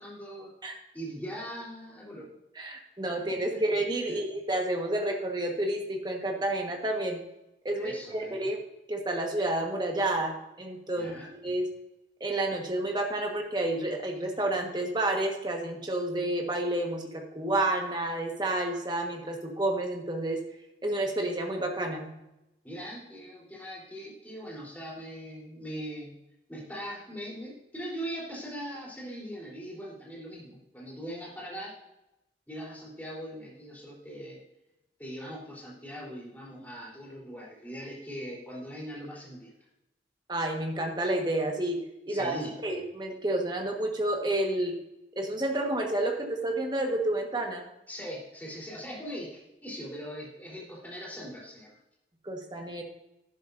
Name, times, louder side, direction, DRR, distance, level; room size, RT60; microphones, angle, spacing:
voice 1, 0.0-0.5 0.9-2.4 3.5-3.6 4.1-4.2 7.8-8.3 10.9-11.3 22.6-26.2 26.5-31.8 32.5-34.4 35.0-39.5 42.1-42.6 47.9-51.8, equal, 10° left, -5 dB, 3.7 m, -40 dB
voice 2, 2.6-7.2 7.6-8.6 8.9-11.1 11.4-11.7 12.2-20.4 20.8-22.1 40.3-41.8 42.1-42.3 42.6-44.7 45.2-47.6 52.2-52.8, right 1 dB, 25° right, 2 dB, 1.4 m, -30 dB
11.5 x 10.5 x 2.6 m, 0.92 s
head